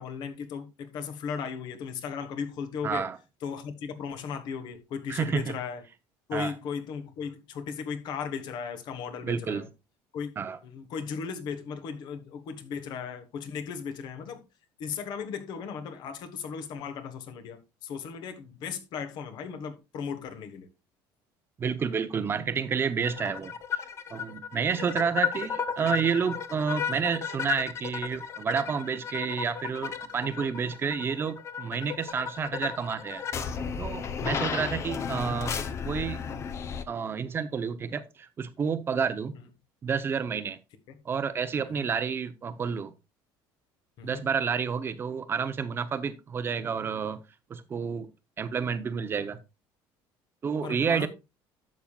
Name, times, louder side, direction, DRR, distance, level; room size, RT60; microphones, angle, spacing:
voice 1, 0.0-3.1 3.4-5.8 6.3-9.7 10.1-10.3 10.6-14.4 14.8-20.7 40.9-41.0 41.6-41.9 44.0-44.2 50.6-51.1, left 6 dB, 55° left, 1.4 m, -36 dB
voice 2, 2.8-3.2 5.1-5.6 6.3-6.5 9.2-9.6 10.4-10.6 21.6-23.8 24.1-35.5 35.8-36.2 36.9-39.3 39.8-40.6 41.0-42.9 44.0-47.2 47.5-48.1 48.4-49.4 50.4-51.1, right 6 dB, 25° right, 0.7 m, -30 dB
sound 1, 23.0-36.8, left 7 dB, 30° left, 0.7 m, -34 dB
11.5 x 7.4 x 2.4 m
cardioid pair, 155°, 9 cm